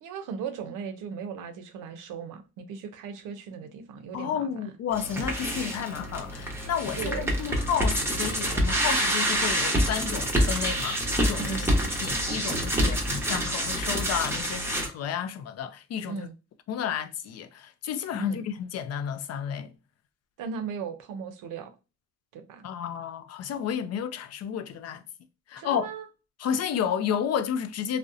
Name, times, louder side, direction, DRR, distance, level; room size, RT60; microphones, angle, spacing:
voice 1, 0.0-4.7 6.9-7.3 11.4-11.8 12.7-13.0 16.1-16.3 18.1-18.4 20.4-21.7 22.3-22.7 25.6-26.1, right 6 dB, 90° right, 0.6 m, -37 dB
voice 2, 4.1-16.3 16.7-19.7 22.6-25.0 25.5-25.9 26.4-28.0, left 8 dB, 55° left, 0.4 m, -31 dB
sound 1, 4.9-14.9, equal, 10° right, 0.7 m, -27 dB
2.6 x 2.1 x 2.4 m
cardioid pair, 90°, 30 cm